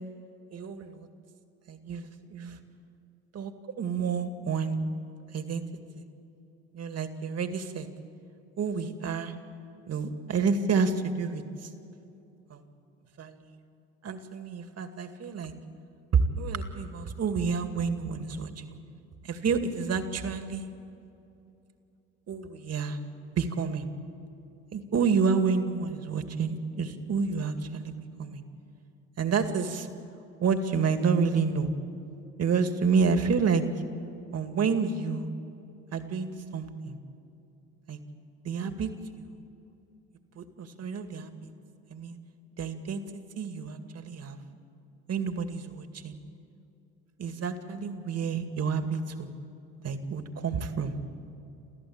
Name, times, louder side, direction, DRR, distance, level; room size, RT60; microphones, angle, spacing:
voice 1, 0.5-1.1 1.7-2.6 3.3-3.5 3.8-4.8 5.3-5.6 6.0-6.1 6.7-7.9 8.6-9.3 9.9-11.7 12.5-12.6 13.2-13.6 14.0-15.5 16.1-18.6 19.2-20.7 22.3-23.0 23.3-23.9 24.7-27.9 28.2-28.4 29.2-29.9 30.4-31.7 32.4-33.7 34.3-35.3 35.9-37.0 37.9-38.0 38.4-38.9 39.2-39.3 40.4-41.3 41.9-42.2 42.6-44.4 45.1-46.2 47.2-49.3 49.8-51.0, right 5 dB, 45° right, 7 dB, 2.2 m, -29 dB
29.5 x 14.0 x 8.8 m, 2.7 s
hypercardioid pair, 75°, 35 cm